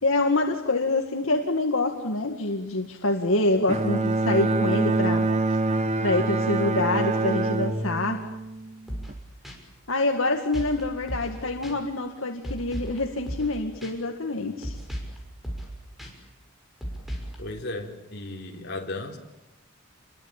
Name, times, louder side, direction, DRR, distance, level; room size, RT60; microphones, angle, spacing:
voice 1, 0.0-5.7 6.0-8.3 9.9-14.8, left 2 dB, 70° left, 3 dB, 2.1 m, -26 dB
Bowed string instrument, 3.7-9.1, right 2 dB, 30° right, 1.2 m, -25 dB
sound 1, 8.9-9.2 9.4-9.6 10.5-10.8 11.1-11.4 11.6-11.7 12.4-13.0 13.3-13.5 13.8-13.9 14.6-15.2 15.4-15.7 16.0-16.1 16.8-17.4, equal, ahead, 6.1 m, -35 dB
voice 2, 17.4-19.2, left 2 dB, 50° left, 1 dB, 4.1 m, -35 dB
28.5 x 22.5 x 9.0 m, 0.97 s
head